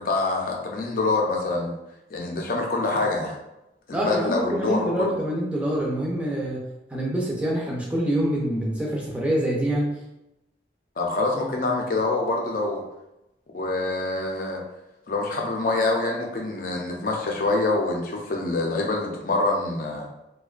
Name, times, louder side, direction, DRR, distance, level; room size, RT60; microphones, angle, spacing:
voice 1, 0.0-1.7 2.1-3.4 3.9-5.1 11.0-12.8 13.5-14.6 15.1-20.1, left 2 dB, 50° left, 0 dB, 0.4 m, -25 dB
voice 2, 3.9-6.6 6.9-9.9, right 1 dB, 5° right, -4 dB, 0.4 m, -25 dB
2.5 x 2.2 x 2.4 m, 0.91 s
head